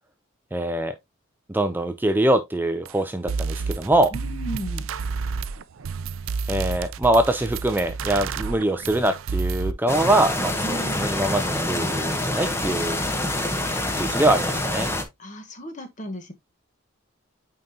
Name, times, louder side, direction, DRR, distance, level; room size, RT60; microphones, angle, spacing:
voice 1, 0.5-0.9 1.5-4.1 6.5-13.0 14.0-14.9, right 1 dB, 10° right, 0.4 m, -23 dB
sound 1, 2.9-3.0 3.3-9.7, right 4 dB, 75° right, 0.5 m, -30 dB
voice 2, 4.1-4.9 10.6-11.2 15.2-16.3, equal, 35° left, 1.1 m, -35 dB
sound 2, 9.9-15.0, left 1 dB, 10° left, 0.9 m, -26 dB
8.9 x 3.9 x 2.7 m
head